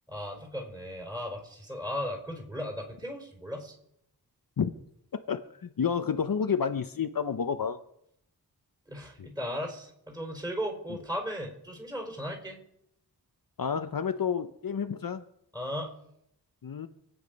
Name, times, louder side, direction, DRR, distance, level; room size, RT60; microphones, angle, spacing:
voice 1, 0.1-3.7 8.9-12.6 15.5-15.9, equal, 10° right, 3 dB, 4.6 m, -36 dB
voice 2, 5.3-7.8 9.2-9.3 13.6-15.2 16.6-16.9, left 7 dB, 55° left, 8 dB, 0.9 m, -30 dB
26.0 x 8.9 x 5.3 m, 0.76 s
wide cardioid pair, 100°, 40 cm